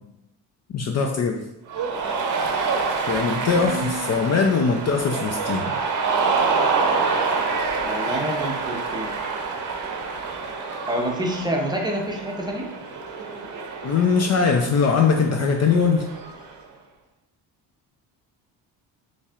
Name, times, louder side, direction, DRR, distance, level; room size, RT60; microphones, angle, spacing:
voice 1, 0.7-1.4 3.1-5.8 13.8-16.1, left 5 dB, 40° left, 3 dB, 0.5 m, -21 dB
Cheering, 1.7-16.5, right 4 dB, 45° right, 0.7 m, -27 dB
voice 2, 3.5-4.2 7.8-9.1 10.9-12.7, right 1 dB, 10° right, 0 dB, 0.7 m, -28 dB
4.1 x 3.2 x 2.4 m, 0.88 s
supercardioid pair, 70°, 43 cm